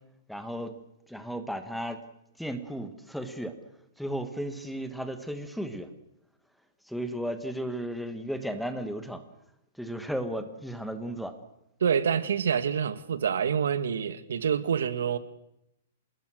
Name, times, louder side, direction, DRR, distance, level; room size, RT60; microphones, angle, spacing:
voice 1, 0.3-0.7 1.1-2.0 2.4-3.5 4.0-5.9 6.9-9.2 9.8-11.3, equal, ahead, 1.4 m, -34 dB
voice 2, 11.8-15.2, right 7 dB, 85° right, 1.7 m, -27 dB
26.5 x 20.0 x 6.4 m
hypercardioid pair, 165°, 0 cm